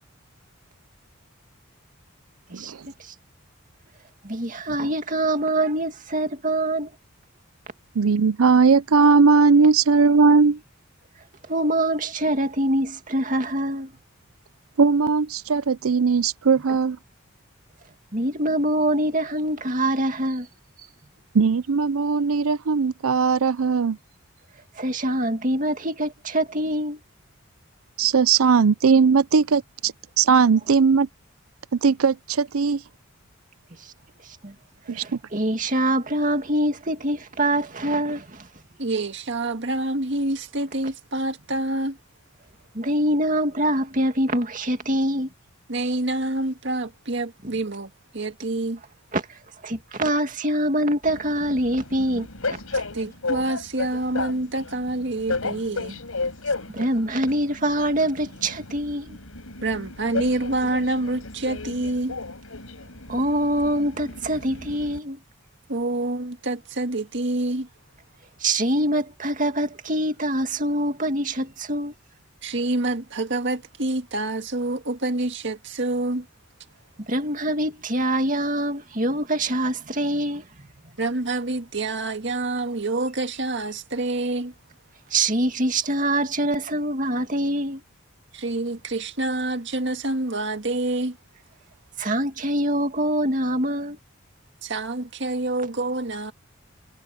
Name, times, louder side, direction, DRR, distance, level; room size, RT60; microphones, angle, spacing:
voice 1, 4.2-6.9 11.5-13.9 16.7-16.8 18.1-20.5 24.8-27.0 33.8-33.9 34.4-34.5 34.9-38.5 42.7-45.3 49.1-49.2 49.6-52.8 56.7-59.2 63.1-65.2 68.4-71.9 77.1-80.4 85.1-87.8 92.0-94.0, right 1 dB, 40° right, 2.3 m, -24 dB
voice 2, 8.0-10.6 14.8-17.0 21.3-24.0 28.0-31.1 31.7-32.8 34.9-35.0, right 5 dB, 90° right, 0.6 m, -19 dB
voice 3, 38.8-42.0 45.7-48.8 52.9-56.0 59.6-62.2 65.7-67.7 72.4-76.3 81.0-84.5 88.3-91.2 94.6-96.3, right 2 dB, 60° right, 1.9 m, -27 dB
Train, 51.0-65.0, left 3 dB, 85° left, 5.5 m, -34 dB
head